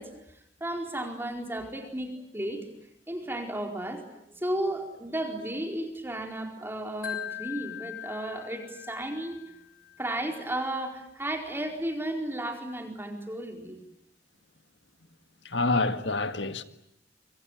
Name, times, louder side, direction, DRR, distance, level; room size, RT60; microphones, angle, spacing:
voice 1, 0.0-2.6 3.1-9.4 10.0-13.8, right 1 dB, 10° right, 4.6 m, -34 dB
Wind chime, 7.0-10.1, left 11 dB, 55° left, 6.8 m, -41 dB
voice 2, 15.5-16.6, left 3 dB, 70° left, 1.9 m, -27 dB
25.5 x 25.0 x 9.3 m
head